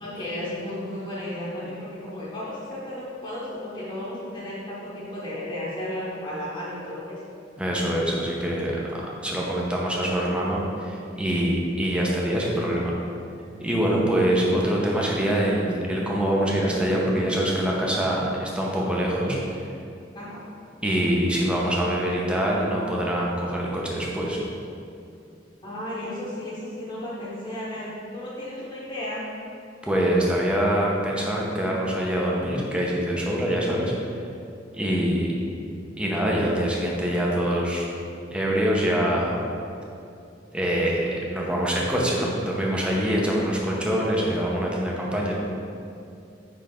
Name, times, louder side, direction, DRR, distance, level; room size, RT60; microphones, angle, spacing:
voice 1, 0.0-7.2 20.1-20.4 21.9-22.3 25.6-29.2 34.8-35.1, left 1 dB, 30° left, -11 dB, 1.3 m, -34 dB
voice 2, 7.6-12.9 13.6-19.4 20.8-24.4 29.8-33.9 34.7-35.3 36.0-37.9 38.3-39.4 40.5-45.3, equal, 5° right, -4 dB, 1.0 m, -24 dB
9.5 x 3.6 x 3.7 m, 2.5 s
head